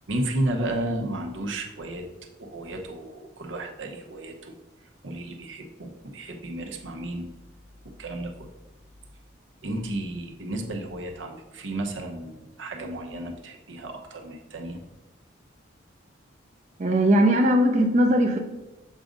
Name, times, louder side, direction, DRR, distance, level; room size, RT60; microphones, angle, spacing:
voice 1, 0.1-2.0 2.4-4.5 5.0-7.3 7.8-8.5 9.6-14.8, right 1 dB, 75° right, 2 dB, 0.8 m, -33 dB
voice 2, 16.8-18.4, equal, 35° right, 1 dB, 0.4 m, -19 dB
7.3 x 2.6 x 5.0 m, 1.0 s
head